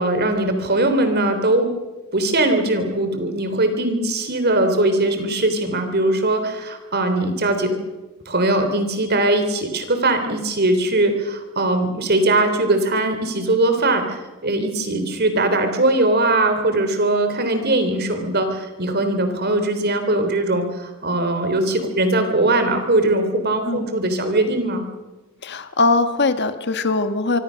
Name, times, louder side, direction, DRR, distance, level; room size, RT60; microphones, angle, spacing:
voice 1, 0.0-1.7 2.1-7.8 8.3-24.8, right 2 dB, 45° right, 7 dB, 3.5 m, -20 dB
voice 2, 25.4-27.4, left 3 dB, 50° left, 9 dB, 1.6 m, -20 dB
25.5 x 24.5 x 6.4 m, 1.1 s
head